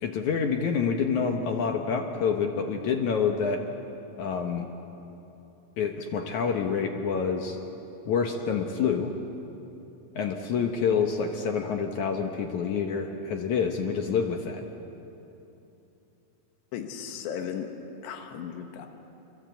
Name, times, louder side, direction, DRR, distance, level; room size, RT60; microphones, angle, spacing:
voice 1, 0.0-3.7 4.2-4.7 5.8-7.6 8.1-9.1 10.2-14.6, left 6 dB, 65° left, 4 dB, 1.9 m, -27 dB
voice 2, 16.7-17.7 18.0-18.9, left 8 dB, 90° left, 5 dB, 3.6 m, -36 dB
26.5 x 22.5 x 8.2 m, 3.0 s
omnidirectional pair, 4.8 m